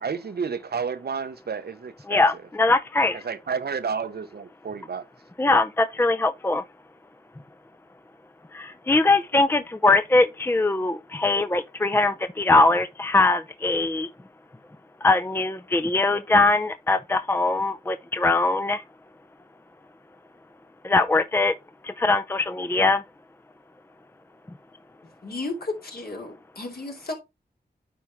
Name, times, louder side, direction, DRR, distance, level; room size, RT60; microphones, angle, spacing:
voice 1, 0.0-2.2 3.2-5.1, right 6 dB, 70° right, 0.8 m, -31 dB
voice 2, 2.1-3.2 5.4-6.6 8.5-14.1 15.0-18.8 20.8-21.6 21.8-23.0, left 2 dB, 15° left, 0.5 m, -21 dB
voice 3, 25.2-27.1, left 2 dB, 65° left, 2.6 m, -33 dB
9.3 x 4.5 x 3.5 m
cardioid pair, 45°, 17 cm